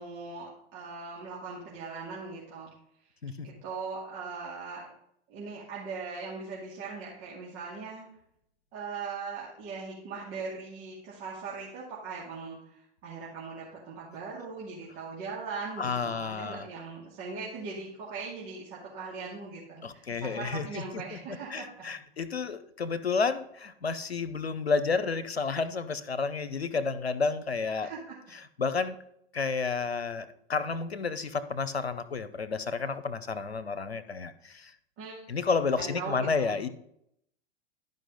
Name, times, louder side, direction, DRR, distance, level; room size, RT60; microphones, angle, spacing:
voice 1, 0.0-2.7 3.4-4.9 5.3-8.1 8.7-21.9 27.8-28.2 35.0-35.2 35.8-36.6, right 4 dB, 40° right, -6 dB, 2.5 m, -40 dB
voice 2, 15.8-16.7 19.8-27.9 28.3-29.0 29.3-34.7 35.3-36.7, left 4 dB, 85° left, 13 dB, 0.7 m, -31 dB
12.5 x 5.3 x 4.0 m, 0.73 s
figure-of-eight pair, 90°, 31 cm